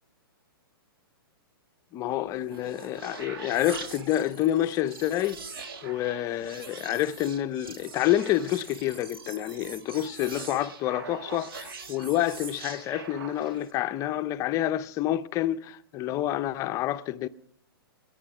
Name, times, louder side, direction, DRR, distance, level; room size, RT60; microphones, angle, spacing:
voice 1, 1.9-5.4 5.8-17.3, left 13 dB, 25° left, 0.6 m, -28 dB
sound 1, 2.3-13.8, right 5 dB, 65° right, 1.7 m, -43 dB
20.5 x 9.9 x 4.8 m
hypercardioid pair, 135°, 13 cm